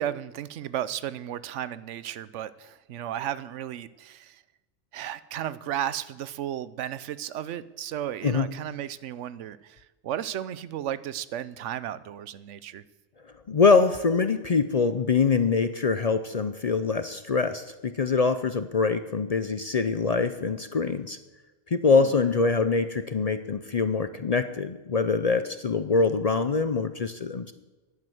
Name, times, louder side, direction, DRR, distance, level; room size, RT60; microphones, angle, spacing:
voice 1, 0.0-4.4 4.9-12.8 21.8-22.1, right 11 dB, 85° right, 16 dB, 1.0 m, -34 dB
voice 2, 13.5-21.2 21.7-27.5, left 4 dB, 45° left, 10 dB, 0.5 m, -24 dB
11.0 x 9.4 x 7.8 m, 1.2 s
omnidirectional pair, 1.2 m